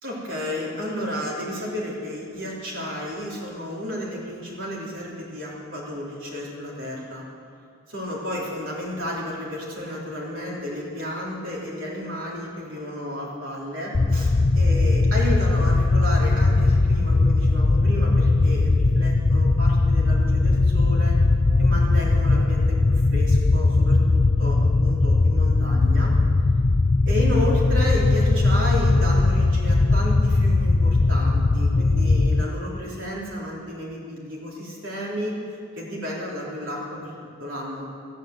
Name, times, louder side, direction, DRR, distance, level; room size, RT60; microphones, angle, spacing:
voice 1, 0.0-7.2 7.9-21.1 21.6-26.1 27.0-35.4 35.7-37.1 37.4-37.9, left 1 dB, 75° right, -4 dB, 3.7 m, -32 dB
sound 1, 13.9-32.4, left 3 dB, 40° left, 0.5 m, -19 dB
13.0 x 11.0 x 7.9 m, 2.3 s
head